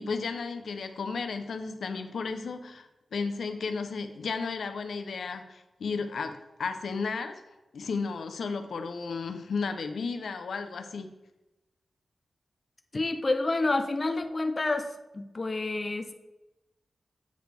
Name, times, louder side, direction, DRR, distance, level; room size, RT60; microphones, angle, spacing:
voice 1, 0.0-7.4 7.7-11.1, left 4 dB, 85° left, 7 dB, 0.6 m, -34 dB
voice 2, 12.9-14.9 15.1-16.1, left 2 dB, 30° left, 7 dB, 0.4 m, -28 dB
7.8 x 5.0 x 3.3 m, 1.0 s
wide cardioid pair, 170°, 0 cm